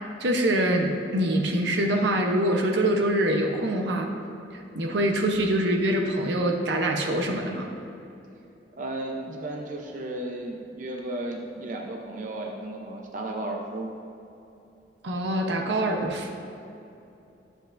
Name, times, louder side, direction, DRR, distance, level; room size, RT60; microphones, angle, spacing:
voice 1, 0.0-4.1 4.5-7.7 15.0-16.3, right 1 dB, 75° right, 2 dB, 0.8 m, -25 dB
voice 2, 8.8-13.9, right 1 dB, 45° right, 0 dB, 0.7 m, -34 dB
12.5 x 7.6 x 2.6 m, 2.8 s
head